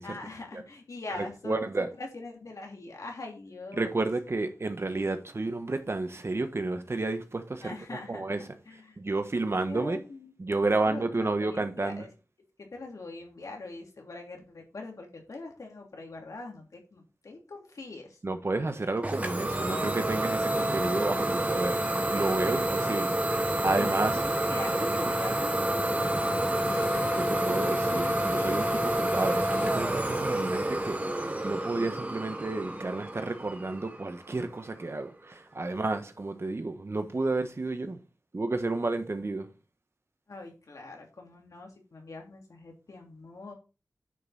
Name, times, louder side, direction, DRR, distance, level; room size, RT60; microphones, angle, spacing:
voice 1, 0.0-4.0 7.6-9.0 9.6-10.3 10.9-12.1 12.6-18.2 22.5-22.7 23.7-26.9 40.3-43.5, left 3 dB, 75° left, 2.8 m, -43 dB
voice 2, 1.4-1.9 3.7-7.7 8.1-8.4 9.0-10.0 10.4-12.0 18.2-24.1 27.4-38.0 38.3-39.5, right 2 dB, 50° right, 1.4 m, -31 dB
Idling / Domestic sounds home sounds, 19.0-34.6, right 1 dB, 25° right, 1.5 m, -29 dB
9.3 x 5.6 x 4.2 m
wide cardioid pair, 60°, 6 cm